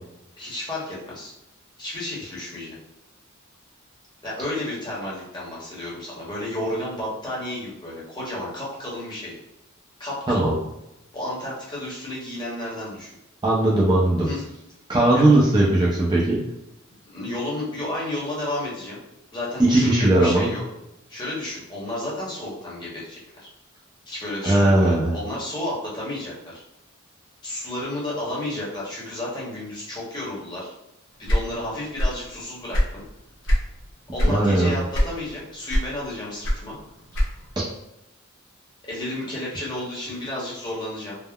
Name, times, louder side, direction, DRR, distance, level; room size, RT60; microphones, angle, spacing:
voice 1, 0.4-1.3 1.8-2.8 4.2-9.4 10.0-10.5 11.1-13.1 14.3-14.4 15.1-15.2 16.9-19.0 19.3-20.6 21.1-23.5 24.1-26.6 27.4-30.7 31.2-33.0 34.1-36.8 38.8-41.2, left 1 dB, 20° left, -6 dB, 0.9 m, -32 dB
voice 2, 13.4-14.3 14.9-16.4 19.6-20.5 24.4-25.1 34.2-34.7, right 1 dB, 20° right, -5 dB, 0.4 m, -18 dB
sound 1, 31.2-32.3 32.5-33.7 34.1-34.4 34.9-35.4 35.7-37.6, equal, 60° left, 0.7 m, -22 dB
3.5 x 2.1 x 2.2 m, 0.88 s
head